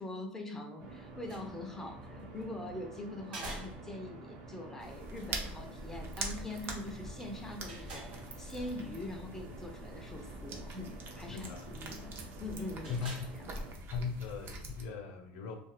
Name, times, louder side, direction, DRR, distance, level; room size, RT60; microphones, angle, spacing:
voice 1, 0.0-13.0 13.4-13.5, left 1 dB, 5° left, 3 dB, 0.4 m, -43 dB
sound 1, 0.8-13.7, right 2 dB, 60° right, 0.9 m, -50 dB
sound 2, 1.1-14.5, right 1 dB, 90° right, 1.0 m, -52 dB
sound 3, 4.8-14.8, right 2 dB, 45° right, 0.6 m, -44 dB
voice 2, 11.3-11.7 12.9-13.3 13.9-15.5, left 5 dB, 65° left, 5 dB, 0.6 m, -39 dB
2.4 x 2.3 x 3.2 m, 0.75 s
supercardioid pair, 110°, 5 cm